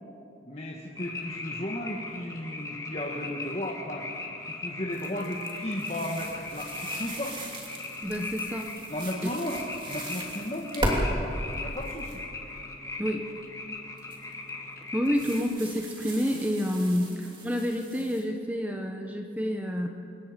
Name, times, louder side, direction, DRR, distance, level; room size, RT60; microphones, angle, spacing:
voice 1, 0.4-4.1 4.5-7.4 8.9-9.6 9.9-12.2, left 1 dB, 35° left, -2 dB, 1.7 m, -35 dB
sound 1, 1.0-15.4, left 3 dB, 20° left, 1.7 m, -39 dB
sound 2, 4.9-11.0 11.5-12.2 14.0-14.3 15.0-18.2, right 1 dB, 25° right, 3.0 m, -38 dB
voice 2, 8.0-8.7 9.2-9.3 13.0-13.3 14.9-19.9, equal, 10° right, 3 dB, 1.1 m, -29 dB
26.5 x 22.0 x 5.3 m, 2.7 s
head